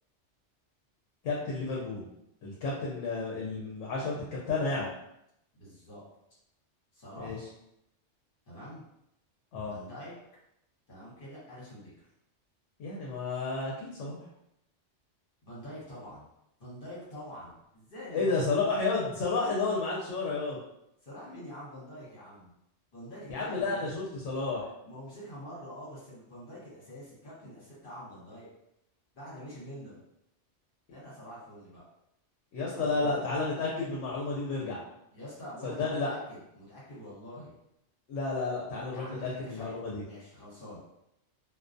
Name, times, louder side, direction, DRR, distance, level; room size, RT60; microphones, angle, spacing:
voice 1, 1.2-2.1 2.4-4.2 4.5-4.9 7.2-7.4 9.5-9.8 12.8-14.2 18.1-20.6 23.3-24.7 32.5-34.8 35.6-36.1 38.1-40.0, left 3 dB, 75° left, -4 dB, 0.9 m, -31 dB
voice 2, 5.5-6.0 6.9-7.5 8.5-8.9 9.6-10.1 10.9-12.1 15.4-16.3 16.6-18.3 21.0-22.5 22.9-23.8 24.8-28.5 29.1-30.0 30.9-31.8 32.6-33.2 35.1-37.6 38.9-39.7 40.0-40.8, equal, 50° left, -7 dB, 1.1 m, -45 dB
2.3 x 2.2 x 2.5 m, 0.81 s
omnidirectional pair, 1.2 m